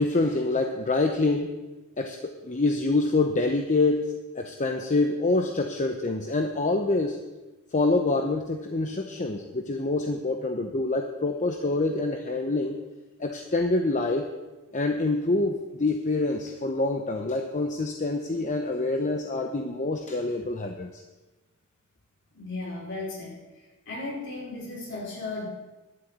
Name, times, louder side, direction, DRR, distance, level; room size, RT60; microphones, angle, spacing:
voice 1, 0.0-1.5 2.0-7.2 7.7-12.8 13.2-14.3 14.7-21.0, left 2 dB, 35° left, 4 dB, 0.8 m, -26 dB
voice 2, 22.3-23.4 23.9-25.5, left 2 dB, 60° left, -3 dB, 4.7 m, -35 dB
11.0 x 7.7 x 9.0 m, 1.1 s
head